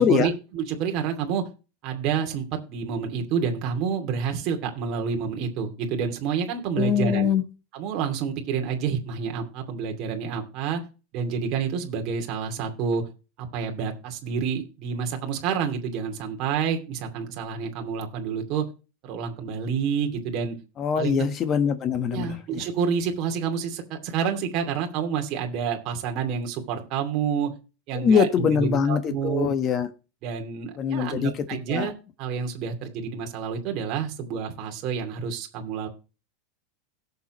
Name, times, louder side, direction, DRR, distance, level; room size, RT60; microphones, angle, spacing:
voice 1, 0.0-1.4 1.8-7.3 7.7-10.8 11.1-13.0 13.4-18.6 19.0-20.6 21.0-21.3 22.1-27.5 27.9-29.5 30.2-35.9, right 6 dB, 35° right, 2.6 m, -28 dB
voice 2, 6.8-7.4 20.8-22.6 27.9-29.9 30.8-31.3 31.7-31.9, left 7 dB, 25° left, 1.3 m, -23 dB
17.5 x 7.1 x 3.1 m
supercardioid pair, 170°, 0 cm